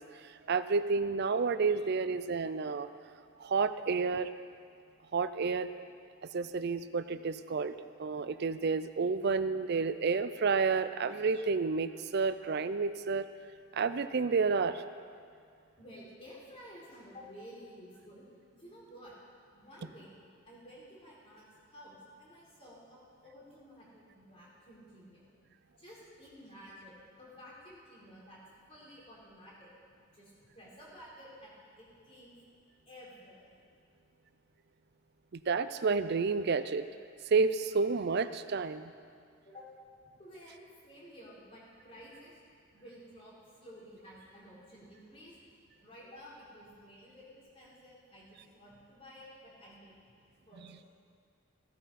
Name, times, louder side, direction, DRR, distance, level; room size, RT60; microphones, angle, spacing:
voice 1, 0.0-2.9 3.4-4.3 5.1-5.7 6.3-7.7 8.0-13.3 13.7-14.8 35.3-36.8 37.3-38.9, right 4 dB, 50° right, 12 dB, 0.5 m, -30 dB
voice 2, 15.8-18.2 18.5-19.2 19.5-20.1 20.5-25.3 25.8-28.4 28.7-29.7 30.1-32.3 32.9-33.5 39.4-39.7 40.0-42.4 42.7-45.3 45.8-49.9 50.5-50.9, equal, 30° left, -6 dB, 3.8 m, -53 dB
16.0 x 13.0 x 4.2 m, 2.2 s
head